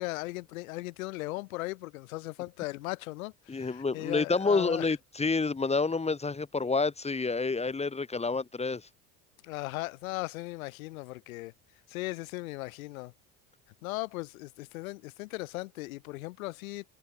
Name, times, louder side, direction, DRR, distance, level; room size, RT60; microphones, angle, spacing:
voice 1, 0.0-4.9 9.4-11.5 11.9-13.1 13.8-16.8, left 21 dB, 70° left, 4.3 m, -37 dB
voice 2, 3.5-8.9, left 4 dB, 15° left, 1.2 m, -29 dB
hypercardioid pair, 65°, 43 cm